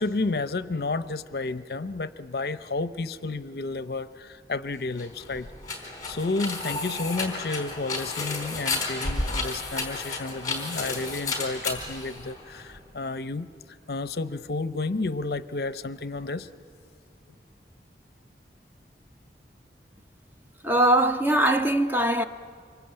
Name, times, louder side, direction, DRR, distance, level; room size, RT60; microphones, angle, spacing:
voice 1, 0.0-5.5 6.1-13.5 13.9-16.5, left 3 dB, 60° left, 0.6 m, -31 dB
sound 1, 4.9-12.8, left 3 dB, 20° left, 3.9 m, -32 dB
voice 2, 20.6-22.2, right 1 dB, 10° right, 0.7 m, -21 dB
25.5 x 23.5 x 8.8 m
head